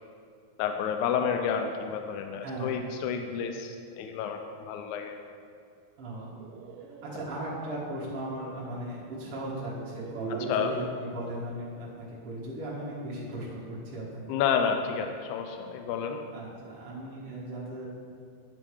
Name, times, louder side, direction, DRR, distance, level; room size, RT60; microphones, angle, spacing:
voice 1, 0.6-5.2 10.5-10.7 14.3-16.2, left 7 dB, 80° left, 5 dB, 1.8 m, -30 dB
voice 2, 2.4-2.8 6.0-6.4 7.1-14.4 16.3-17.9, right 1 dB, 50° right, -7 dB, 2.3 m, -37 dB
sound 1, 6.1-7.4 8.9-9.0 9.6-11.0, right 4 dB, 90° right, 2.3 m, -41 dB
9.1 x 6.9 x 4.8 m, 2.3 s
omnidirectional pair, 3.8 m